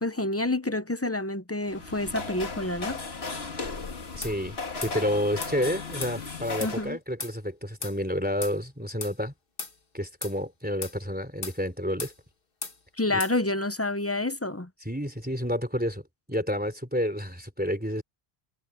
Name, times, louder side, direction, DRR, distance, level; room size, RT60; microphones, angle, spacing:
voice 1, 0.0-3.0 6.6-7.0 13.0-14.7, left 2 dB, 15° left, 0.8 m, -28 dB
sound 1, 1.6-6.9, left 4 dB, 80° left, 2.1 m, -36 dB
sound 2, 4.2-4.4 4.8-5.0 5.4-5.6 6.0-6.2 6.6-6.8 7.2-7.4 7.8-8.0 8.4-8.6 9.0-9.2 9.6-9.8 10.2-10.4 10.8-11.0 11.4-11.6 12.0-12.2 12.6-12.8 13.2-13.4, left 4 dB, 60° left, 2.0 m, -36 dB
voice 2, 4.2-9.3 9.9-12.1 13.1-13.2 14.9-16.0 16.3-18.0, equal, 10° right, 3.5 m, -30 dB
omnidirectional pair, 1.0 m